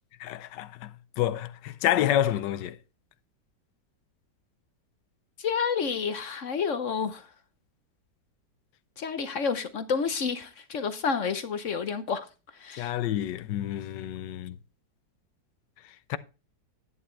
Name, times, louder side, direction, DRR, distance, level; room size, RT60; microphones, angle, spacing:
voice 1, 0.2-0.9 1.2-2.8 12.8-14.6 16.1-16.2, left 12 dB, 85° left, 1.3 m, -28 dB
voice 2, 5.4-7.3 9.0-12.3 12.5-12.9, left 6 dB, 55° left, 1.0 m, -30 dB
11.0 x 9.4 x 3.2 m
omnidirectional pair, 1.9 m